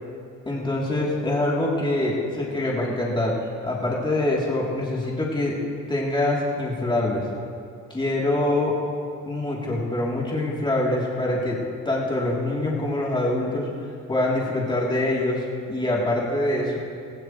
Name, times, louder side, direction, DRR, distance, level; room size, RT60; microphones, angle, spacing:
voice 1, 0.4-3.3 3.6-5.6 5.9-7.2 7.9-8.7 9.3-13.7 14.1-16.8, left 1 dB, 15° left, -5 dB, 3.4 m, -24 dB
20.5 x 15.5 x 3.3 m, 2.6 s
cardioid pair, 90°, 30 cm